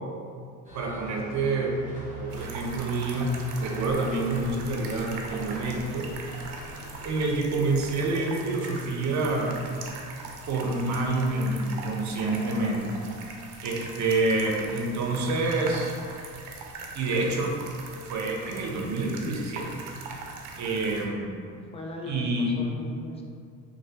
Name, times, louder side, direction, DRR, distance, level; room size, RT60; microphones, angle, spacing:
sound 1, 0.6-7.3, right 4 dB, 20° right, 1.1 m, -43 dB
voice 1, 0.7-1.8 2.2-6.1 7.0-9.6 10.5-13.0 13.6-15.9 16.9-17.6 18.0-19.8 20.6-21.3 22.1-22.6, right 2 dB, 45° right, 0 dB, 0.6 m, -27 dB
sound 2, 2.3-21.0, right 3 dB, 85° right, 0.5 m, -41 dB
voice 2, 21.5-23.2, left 2 dB, 15° left, 0 dB, 0.3 m, -39 dB
3.1 x 2.3 x 2.8 m, 2.3 s
supercardioid pair, 80°, 39 cm